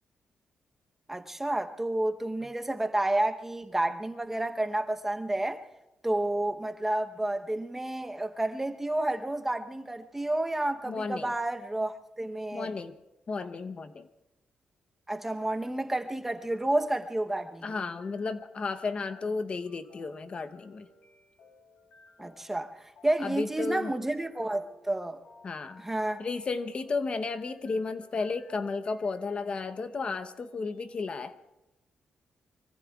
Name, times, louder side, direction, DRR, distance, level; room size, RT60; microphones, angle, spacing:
voice 1, 1.1-5.6 6.0-12.7 15.1-17.6 22.2-25.2 25.8-26.3, right 1 dB, 10° right, 0.9 m, -30 dB
voice 2, 10.8-11.3 12.5-13.0 13.3-14.1 17.6-20.9 23.2-23.9 25.4-25.8 26.2-31.3, left 4 dB, 40° left, 0.9 m, -33 dB
sound 1, 17.7-31.0, left 3 dB, 90° left, 3.5 m, -59 dB
25.5 x 24.0 x 2.4 m
cardioid pair, 120°, 3 cm